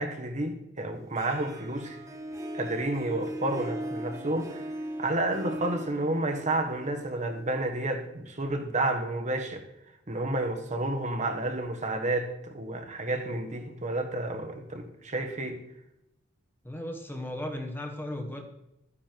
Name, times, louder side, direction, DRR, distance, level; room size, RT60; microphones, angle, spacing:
voice 1, 0.0-2.0 2.5-4.7 5.0-9.6 10.1-15.6, right 2 dB, 35° right, 1.3 m, -30 dB
Harp, 1.2-8.0, right 1 dB, 15° right, 1.8 m, -39 dB
voice 2, 16.6-18.4, left 1 dB, 10° left, 1.3 m, -36 dB
13.0 x 9.9 x 4.6 m
head